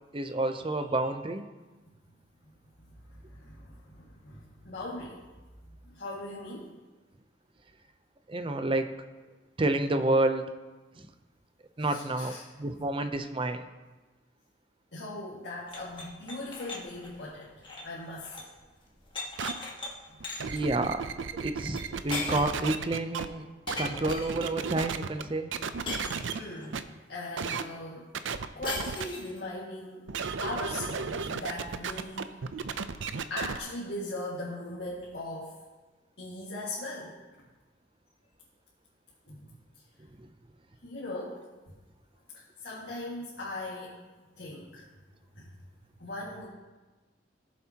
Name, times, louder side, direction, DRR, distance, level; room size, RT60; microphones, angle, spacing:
voice 1, 0.1-1.5 8.3-8.9 9.6-10.5 11.8-13.7 20.5-21.0 21.3-23.5 23.8-25.5 40.2-40.3, right 2 dB, 30° right, 8 dB, 0.6 m, -29 dB
voice 2, 0.7-1.1 2.9-5.2 5.7-6.8 11.8-12.5 14.9-18.5 20.1-20.3 26.3-28.1 28.5-30.1 30.4-32.4 33.3-35.5 36.2-37.4 39.3-39.6 40.8-41.7 42.3-44.0 44.4-44.8 45.4-45.5 46.0-46.5, left 2 dB, 65° left, -7 dB, 1.9 m, -40 dB
sound 1, 15.7-18.6 18.8-19.9 20.2-20.6 21.8-21.9 22.1-22.7 23.7-24.5 25.9-26.7 28.6-29.4, left 2 dB, 25° left, 1.7 m, -38 dB
sound 2, 19.4-19.5 20.2-23.3 23.7-25.2 25.5-26.4 26.7-26.8 27.4-27.6 28.1-29.0 30.1-33.6, right 5 dB, 85° right, 0.5 m, -34 dB
19.0 x 7.3 x 2.9 m, 1.2 s
head